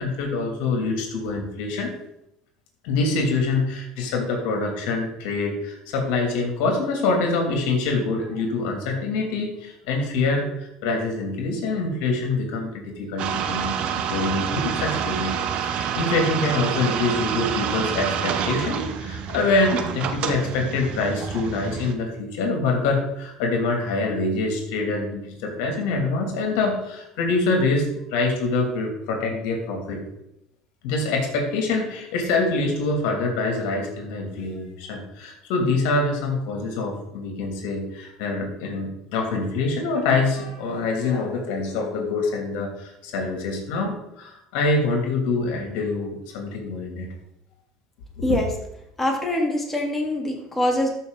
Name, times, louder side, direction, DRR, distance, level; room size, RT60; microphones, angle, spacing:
voice 1, 0.0-1.9 2.8-15.4 15.6-30.0 30.8-47.1, left 3 dB, 75° left, 2 dB, 3.0 m, -25 dB
sound 1, 13.2-21.9, right 8 dB, 55° right, 1.1 m, -28 dB
voice 2, 49.0-50.9, left 1 dB, 10° left, -1 dB, 3.3 m, -23 dB
13.0 x 5.9 x 4.1 m, 0.79 s
supercardioid pair, 85°, 2 cm